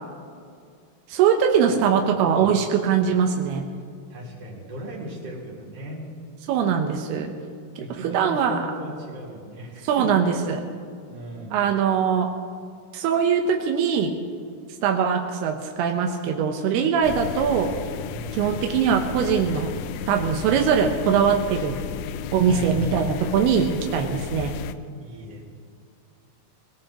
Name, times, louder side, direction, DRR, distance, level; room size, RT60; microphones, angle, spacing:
voice 1, 1.1-3.7 6.5-7.3 7.8-8.6 9.8-10.6 11.5-12.3 12.9-14.2 14.8-17.7 18.3-19.7 20.1-21.8 22.3-24.6, right 7 dB, 85° right, 3 dB, 2.3 m, -22 dB
voice 2, 2.2-2.6 4.1-6.1 7.8-10.3 11.1-11.6 18.0-18.4 22.4-22.8 25.0-25.4, right 1 dB, 35° right, -4 dB, 4.2 m, -37 dB
indoors ambient room tone, 17.0-24.7, left 9 dB, 85° left, 3.0 m, -33 dB
25.5 x 18.0 x 3.0 m, 2.2 s
omnidirectional pair, 5.8 m